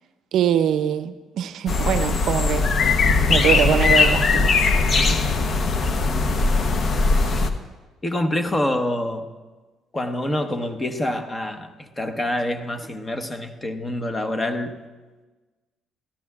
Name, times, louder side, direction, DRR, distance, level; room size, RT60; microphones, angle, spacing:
voice 1, 0.3-2.9 3.3-4.7, right 9 dB, 70° right, 12 dB, 0.5 m, -23 dB
sound 1, 1.7-7.5, left 4 dB, 50° left, 0.9 m, -19 dB
voice 2, 8.0-9.3 9.9-14.8, left 1 dB, 20° left, 7 dB, 1.1 m, -26 dB
18.0 x 13.5 x 2.4 m, 1.3 s
cardioid pair, 85°, 0 cm